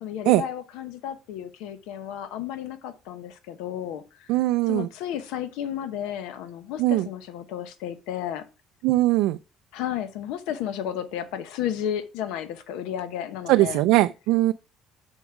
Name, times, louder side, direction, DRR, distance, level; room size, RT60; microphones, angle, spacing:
voice 1, 0.0-4.3 4.7-8.4 9.7-13.8, left 10 dB, 85° left, 0.8 m, -33 dB
voice 2, 4.3-4.9 6.8-7.1 8.8-9.4 13.5-14.5, right 17 dB, 85° right, 0.3 m, -20 dB
7.2 x 4.9 x 4.7 m
cardioid pair, 105°, 0 cm